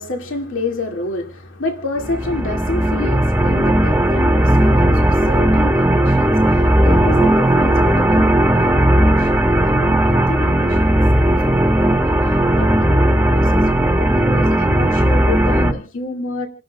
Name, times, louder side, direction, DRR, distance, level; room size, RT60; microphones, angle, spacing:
voice 1, 0.0-12.2 12.5-16.5, left 2 dB, 70° left, 2.2 m, -28 dB
sound 1, 2.0-15.7, right 1 dB, 10° right, 1.2 m, -15 dB
29.0 x 11.5 x 2.3 m
head